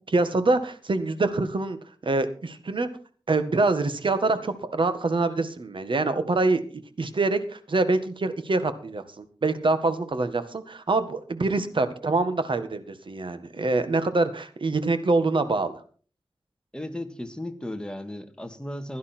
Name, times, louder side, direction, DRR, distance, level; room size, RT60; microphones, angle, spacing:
voice 1, 0.1-1.8 2.0-2.9 3.3-6.6 7.0-15.8, right 3 dB, 70° right, 1.7 m, -25 dB
voice 2, 16.7-19.0, left 1 dB, 10° left, 2.0 m, -35 dB
16.0 x 11.5 x 4.5 m
wide cardioid pair, 65°, 9 cm